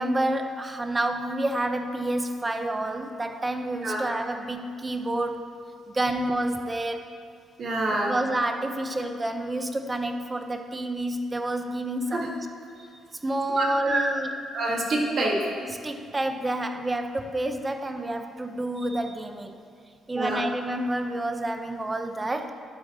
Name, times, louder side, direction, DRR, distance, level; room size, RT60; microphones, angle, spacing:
voice 1, 0.0-5.5 5.9-7.0 7.9-12.3 13.2-14.3 15.8-19.5 20.1-22.5, right 1 dB, 20° right, 7 dB, 0.6 m, -29 dB
voice 2, 7.6-8.1 12.1-12.3 13.5-14.1 14.5-15.7 20.1-20.4, right 2 dB, 55° right, -2 dB, 1.5 m, -26 dB
11.0 x 4.5 x 4.2 m, 2.2 s
cardioid pair, 90°, 0 cm